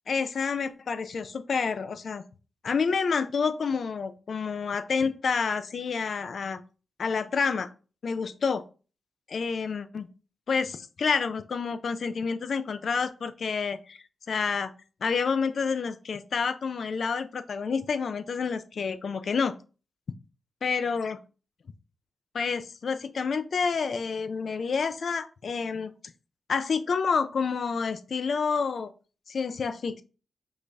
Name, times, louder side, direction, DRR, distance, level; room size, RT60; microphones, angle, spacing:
voice 1, 0.1-2.2 2.6-6.6 7.0-7.7 8.0-8.6 9.3-10.1 10.5-14.0 14.3-14.7 15.0-19.5 20.6-21.2 22.3-25.9 26.5-28.9 29.3-30.0, left 5 dB, 70° left, 11 dB, 0.4 m, -28 dB
4.8 x 2.6 x 3.4 m, 0.35 s
cardioid pair, 55°, 0 cm